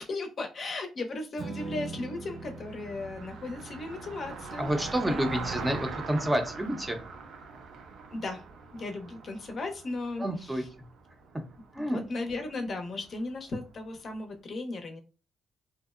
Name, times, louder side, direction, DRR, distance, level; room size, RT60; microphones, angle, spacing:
voice 1, 0.0-4.7 5.0-5.2 8.1-8.4 8.7-10.3 10.6-10.7 11.8-15.0, left 2 dB, 50° left, 4 dB, 0.5 m, -36 dB
Strum, 1.4-7.7, right 3 dB, 90° right, 1.1 m, -45 dB
Car passing by, 1.6-13.9, right 4 dB, 70° right, 0.4 m, -42 dB
voice 2, 4.6-7.0 10.2-10.7 11.3-11.5 11.7-12.0, right 1 dB, 15° right, 5 dB, 0.5 m, -29 dB
2.7 x 2.0 x 2.3 m, 0.31 s
cardioid pair, 90°, 0 cm